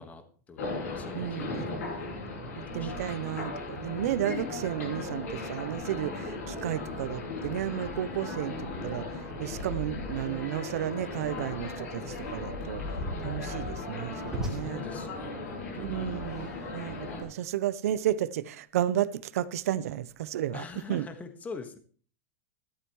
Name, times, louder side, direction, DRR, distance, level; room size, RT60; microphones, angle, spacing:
voice 1, 0.0-2.2 2.7-3.3 14.5-16.6 17.1-17.2 20.5-21.8, left 4 dB, 20° left, 1.5 m, -45 dB
sound 1, 0.6-17.2, left 3 dB, 80° left, 6.0 m, -37 dB
voice 2, 1.1-1.7 2.6-13.0 13.2-14.8 15.8-21.1, right 12 dB, 75° right, 0.7 m, -33 dB
sound 2, 12.0-17.1, right 1 dB, 5° right, 2.8 m, -42 dB
13.5 x 12.5 x 3.1 m
supercardioid pair, 130°, 8 cm